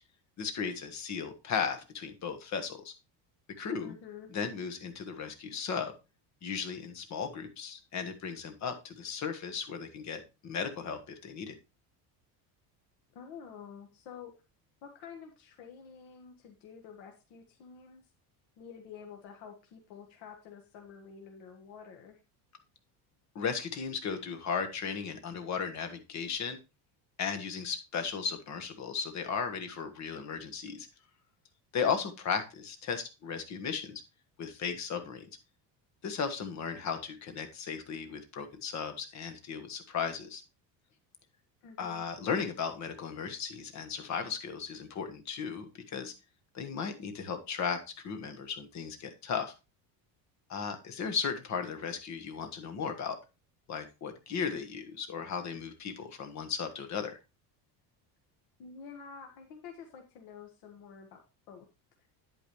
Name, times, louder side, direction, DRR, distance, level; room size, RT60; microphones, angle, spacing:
voice 1, 0.4-2.9 3.6-3.9 4.3-5.9 6.4-11.5 23.3-26.6 27.2-30.9 31.7-34.0 34.4-35.3 36.0-40.4 41.8-46.1 46.5-47.8 48.0-49.5 50.5-53.2 53.7-57.2, left 6 dB, 40° left, 7 dB, 1.4 m, -36 dB
voice 2, 3.8-4.3 13.1-14.3 14.8-18.0 18.6-22.2 41.6-42.0 58.6-61.7, left 6 dB, 80° left, 3 dB, 1.6 m, -49 dB
9.5 x 8.7 x 3.1 m, 0.28 s
cardioid pair, 150°, 43 cm